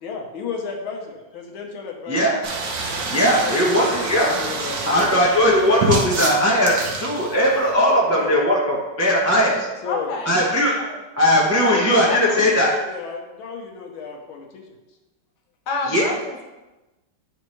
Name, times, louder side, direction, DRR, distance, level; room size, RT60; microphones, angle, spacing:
voice 1, 0.0-2.2 3.4-5.2 8.1-8.3 9.8-10.1 11.7-14.8, left 6 dB, 80° left, 1 dB, 1.7 m, -33 dB
voice 2, 2.1-2.4 3.1-4.4 4.9-9.7 10.2-10.8 11.2-12.7 15.9-16.0, equal, 20° right, -4 dB, 0.3 m, -18 dB
sound 1, 2.4-7.7, right 3 dB, 70° right, 1.5 m, -27 dB
voice 3, 9.8-10.3 10.8-11.0 11.6-12.2 15.7-16.4, left 3 dB, 60° left, 1 dB, 1.3 m, -28 dB
9.3 x 3.4 x 3.1 m, 1.1 s
omnidirectional pair, 2.2 m